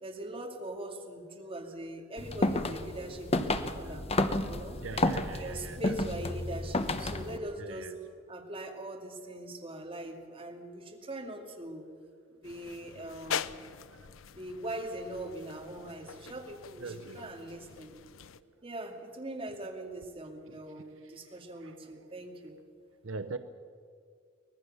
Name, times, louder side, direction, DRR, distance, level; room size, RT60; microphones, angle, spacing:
voice 1, 0.0-4.1 4.5-4.8 5.3-7.9 8.3-11.9 12.3-13.5 14.3-17.9 18.6-22.6, right 1 dB, 30° right, 1 dB, 2.4 m, -41 dB
sound 1, 2.2-7.4, left 2 dB, 30° left, 0.9 m, -31 dB
voice 2, 4.4-6.0 7.6-8.0 13.9-14.1 16.8-17.2 20.5-22.1 23.0-23.4, right 3 dB, 75° right, 10 dB, 0.8 m, -44 dB
sound 2, 12.4-18.4, left 8 dB, 90° left, 0.6 m, -42 dB
24.5 x 18.5 x 6.6 m, 2.2 s
head